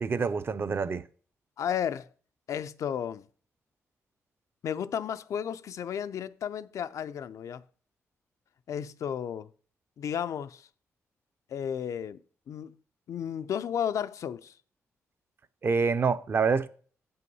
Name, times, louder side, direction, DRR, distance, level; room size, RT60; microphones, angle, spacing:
voice 1, 0.0-1.0 15.6-16.7, right 5 dB, 45° right, 0.6 m, -26 dB
voice 2, 1.6-2.1 2.5-3.3 4.6-7.6 8.7-9.5 10.0-10.7 11.5-12.8 13.1-14.6, left 8 dB, 70° left, 0.4 m, -33 dB
7.7 x 5.6 x 5.4 m
cardioid pair, 85°, 6 cm